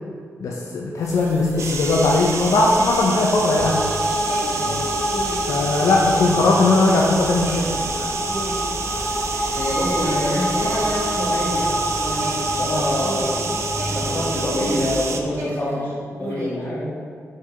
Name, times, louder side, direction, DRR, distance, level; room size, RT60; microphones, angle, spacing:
voice 1, 0.4-3.8 5.5-8.1, left 2 dB, 80° left, -2 dB, 0.6 m, -19 dB
sound 1, 1.0-11.8 12.2-15.0 15.3-16.6, right 1 dB, 90° right, 1.6 m, -36 dB
sound 2, 1.6-15.2, right 4 dB, 60° right, 0.5 m, -29 dB
sound 3, 3.6-14.9, equal, 5° left, 0.4 m, -26 dB
voice 2, 9.5-13.6 13.8-15.9 16.2-16.9, left 1 dB, 35° left, -7 dB, 1.6 m, -26 dB
4.9 x 4.5 x 5.3 m, 2.1 s
wide cardioid pair, 180°, 5 cm